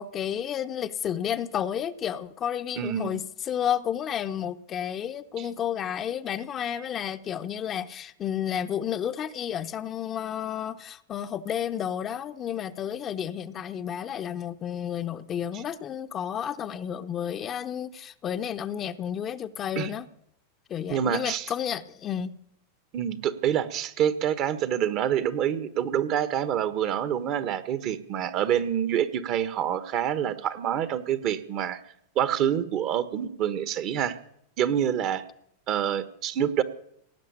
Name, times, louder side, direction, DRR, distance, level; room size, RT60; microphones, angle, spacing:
voice 1, 0.0-20.1 20.7-22.3, left 9 dB, 35° left, 0.8 m, -31 dB
voice 2, 2.8-3.2 5.4-5.5 19.8-19.9 20.9-21.5 22.9-31.8 32.1-34.2 34.6-35.2 35.7-36.6, right 9 dB, 45° right, 1.3 m, -27 dB
17.5 x 7.9 x 9.7 m
hypercardioid pair, 95°, 0 cm